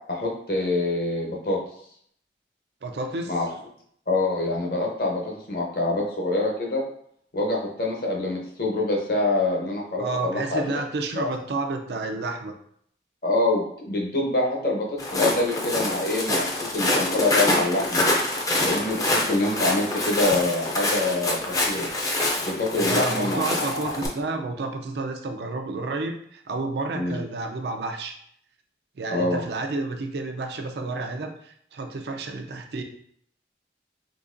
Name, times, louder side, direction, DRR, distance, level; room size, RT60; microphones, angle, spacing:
voice 1, 0.1-1.6 3.3-3.5 4.1-6.8 7.3-10.8 11.1-11.3 13.2-14.9 15.1-16.4 16.7-18.1 18.6-21.4 21.7-21.9 22.4-23.9 26.9-27.2 29.1-29.4, left 2 dB, 55° left, -1 dB, 0.8 m, -25 dB
voice 2, 2.8-3.3 10.0-12.5 22.7-28.2 29.0-32.8, right 3 dB, 75° right, 4 dB, 0.4 m, -30 dB
Walk footsteps, 15.0-24.1, left 1 dB, 20° left, 0.4 m, -26 dB
3.8 x 2.8 x 2.5 m, 0.66 s
head